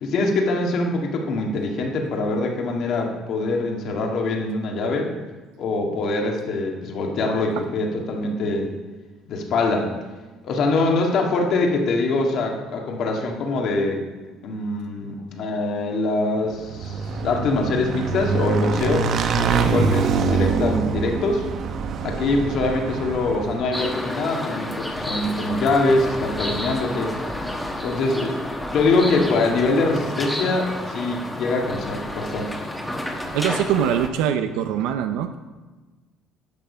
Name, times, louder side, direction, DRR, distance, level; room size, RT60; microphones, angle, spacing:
voice 1, 0.0-5.1 5.6-8.8 9.3-9.9 10.4-14.0 14.4-19.1 19.4-21.5 22.0-27.1 27.8-28.4 28.6-32.5, left 2 dB, 60° left, 1 dB, 1.8 m, -23 dB
Motorcycle / Engine, 16.6-23.9, right 5 dB, 50° right, 0.8 m, -24 dB
sound 1, 23.7-34.1, left 1 dB, 5° left, 1.3 m, -30 dB
voice 2, 33.1-35.3, right 9 dB, 85° right, 8 dB, 0.5 m, -23 dB
10.5 x 6.8 x 5.5 m, 1.2 s
cardioid pair, 120°, 0 cm